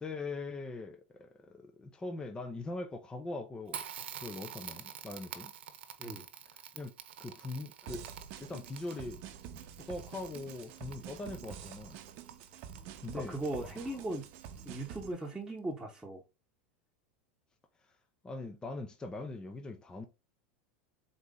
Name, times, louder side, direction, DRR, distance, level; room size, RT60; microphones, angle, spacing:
voice 1, 0.0-3.9 4.1-5.5 6.7-6.9 7.2-8.1 8.4-9.2 9.8-12.0 13.0-13.4 18.2-20.1, left 2 dB, 15° left, 0.6 m, -41 dB
Crackle, 3.7-15.3, right 9 dB, 85° right, 0.7 m, -49 dB
sound 1, 7.9-15.1, right 8 dB, 55° right, 0.7 m, -48 dB
voice 2, 13.1-14.3 14.6-16.2, right 1 dB, 5° right, 1.0 m, -38 dB
3.9 x 3.0 x 3.8 m
supercardioid pair, 120°, 6 cm